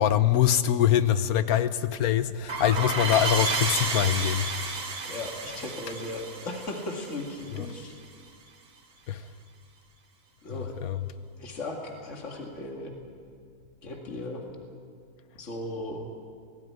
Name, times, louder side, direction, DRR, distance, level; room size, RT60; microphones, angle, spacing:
voice 1, 0.0-4.5 7.6-7.7 9.1-9.3 10.8-11.0, left 10 dB, 75° left, 1.2 m, -23 dB
sound 1, 2.5-7.8, right 4 dB, 85° right, 2.2 m, -31 dB
voice 2, 5.0-7.9 10.4-10.8 11.4-12.9 13.8-14.5 15.4-16.0, left 2 dB, 55° left, 2.4 m, -37 dB
18.0 x 16.5 x 9.4 m
omnidirectional pair, 1.6 m